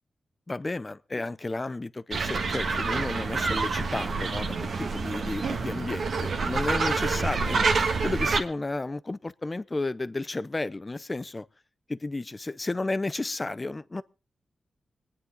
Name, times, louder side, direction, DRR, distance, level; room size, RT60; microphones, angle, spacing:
voice 1, 0.5-11.5 11.9-14.0, left 2 dB, 25° left, 0.6 m, -32 dB
sound 1, 2.1-8.4, right 4 dB, 75° right, 1.5 m, -27 dB
25.5 x 9.9 x 3.8 m
wide cardioid pair, 90°, 0 cm